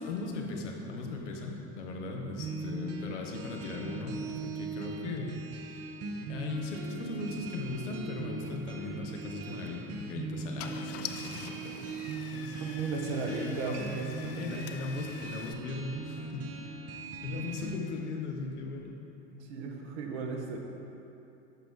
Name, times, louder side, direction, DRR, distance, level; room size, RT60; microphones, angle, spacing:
voice 1, 0.0-5.9 6.3-11.9 12.3-12.6 12.9-13.8 14.2-16.7 17.2-19.0, left 3 dB, 85° left, 1 dB, 1.0 m, -38 dB
sound 1, 2.4-17.8, right 4 dB, 45° right, 0.8 m, -40 dB
Car / Engine starting, 9.5-9.7 10.3-10.4 10.6-15.5, left 10 dB, 45° left, 0.4 m, -45 dB
voice 2, 12.6-14.7 19.3-20.6, right 4 dB, 70° right, 2 dB, 1.1 m, -36 dB
7.7 x 5.9 x 3.6 m, 2.9 s
hypercardioid pair, 75°, 35 cm